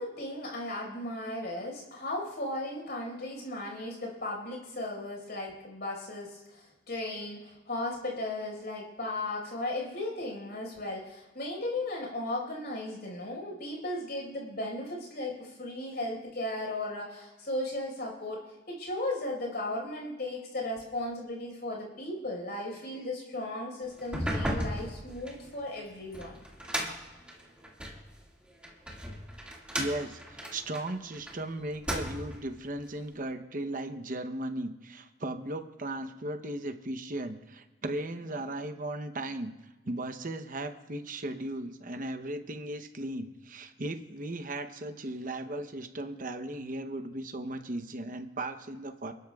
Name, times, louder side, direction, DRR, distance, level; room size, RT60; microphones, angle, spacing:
voice 1, 0.0-26.4, left 1 dB, 55° left, 0 dB, 4.8 m, -36 dB
sound 1, 24.0-28.0 28.6-31.3 31.7-32.5, equal, 5° right, 1.9 m, -35 dB
voice 2, 29.8-39.5 39.8-49.1, right 1 dB, 45° right, 8 dB, 0.8 m, -36 dB
28.5 x 12.5 x 2.4 m, 1.3 s
head